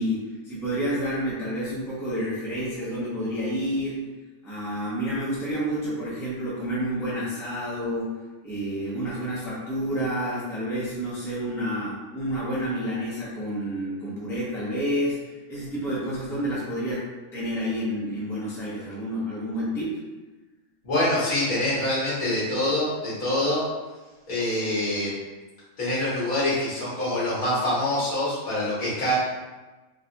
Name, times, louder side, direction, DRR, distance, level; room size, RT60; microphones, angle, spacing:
voice 1, 0.0-4.0 4.4-15.2 15.5-20.0, equal, ahead, -7 dB, 0.6 m, -29 dB
voice 2, 20.8-23.6 24.3-25.1 25.8-29.2, left 1 dB, 80° left, -8 dB, 2.0 m, -25 dB
3.9 x 2.4 x 2.8 m, 1.2 s
omnidirectional pair, 1.5 m